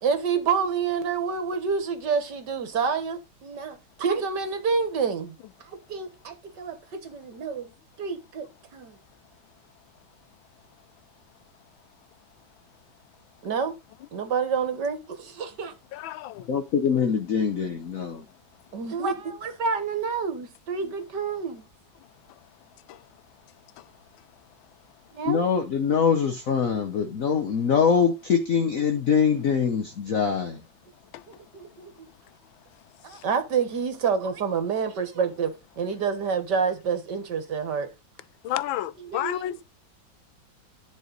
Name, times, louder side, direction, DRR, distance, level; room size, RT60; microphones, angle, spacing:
voice 1, 0.0-5.4 5.6-7.7 8.0-8.5 8.7-9.0 13.4-13.7 14.1-15.8 18.7-21.7 25.1-25.4 31.3-31.9 33.0-37.9 39.0-39.6, right 6 dB, 60° right, 2.0 m, -28 dB
voice 2, 15.9-16.5 22.9-23.0 23.8-23.9 31.1-31.2 33.1-33.2 38.4-39.6, left 12 dB, 80° left, 1.4 m, -31 dB
voice 3, 16.5-18.2 25.3-30.6, left 6 dB, 50° left, 1.2 m, -23 dB
11.0 x 5.1 x 4.0 m
omnidirectional pair, 2.1 m